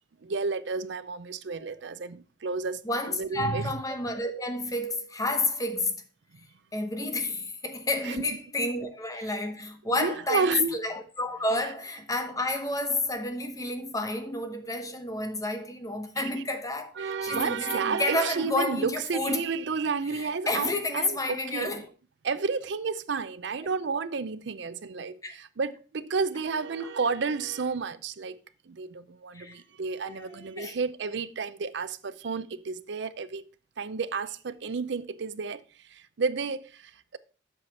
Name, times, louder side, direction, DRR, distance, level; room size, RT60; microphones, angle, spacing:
voice 1, 0.2-2.8 3.2-3.7 8.0-8.3 10.0-10.8 16.3-16.4 17.0-21.7 22.2-28.4 28.7-33.5 33.8-37.2, right 4 dB, 65° right, 0.5 m, -31 dB
voice 2, 2.8-5.9 6.7-19.5 20.1-21.9 25.2-25.3 26.8-26.9 29.3-29.6 30.0-30.7, left 2 dB, 20° left, 0.9 m, -30 dB
7.9 x 5.8 x 4.5 m
head